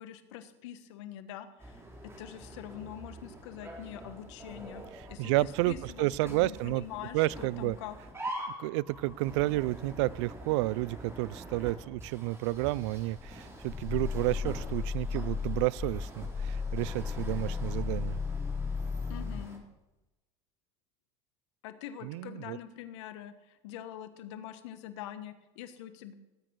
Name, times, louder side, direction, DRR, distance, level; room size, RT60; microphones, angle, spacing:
voice 1, 0.0-8.0 19.1-19.6 21.6-26.1, left 11 dB, 85° left, 11 dB, 1.4 m, -44 dB
sound 1, 1.6-19.6, right 1 dB, 15° right, 4.1 m, -46 dB
voice 2, 5.2-6.8 7.1-7.8 8.6-18.2 22.0-22.6, right 19 dB, 80° right, 24 dB, 0.4 m, -31 dB
Growling, 13.2-19.5, left 5 dB, 20° left, 0.6 m, -35 dB
18.5 x 8.7 x 6.2 m, 1.0 s
supercardioid pair, 90°, 15 cm